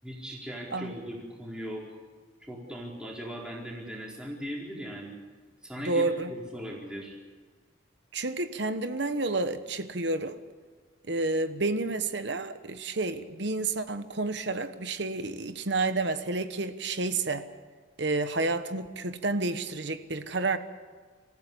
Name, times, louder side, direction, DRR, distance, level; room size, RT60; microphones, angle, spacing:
voice 1, 0.0-1.8 2.4-5.2 5.6-7.2, equal, 5° right, -3 dB, 4.4 m, -39 dB
voice 2, 5.8-6.3 8.1-10.4 11.1-17.5 18.0-20.6, right 3 dB, 60° right, 10 dB, 1.2 m, -30 dB
27.5 x 15.5 x 8.6 m, 1.5 s
head